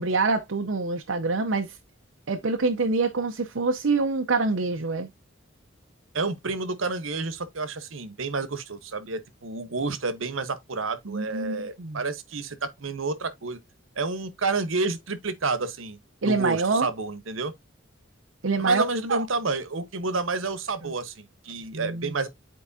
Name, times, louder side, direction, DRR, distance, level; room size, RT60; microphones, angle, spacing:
voice 1, 0.0-1.8 2.3-5.1 11.0-12.0 16.2-16.9 18.4-18.8 19.1-19.2 20.8-20.9 21.7-22.2, right 3 dB, 70° right, 0.7 m, -26 dB
voice 2, 6.1-13.6 14.0-17.5 18.6-22.3, right 3 dB, 85° right, 1.0 m, -30 dB
9.7 x 4.5 x 2.7 m
head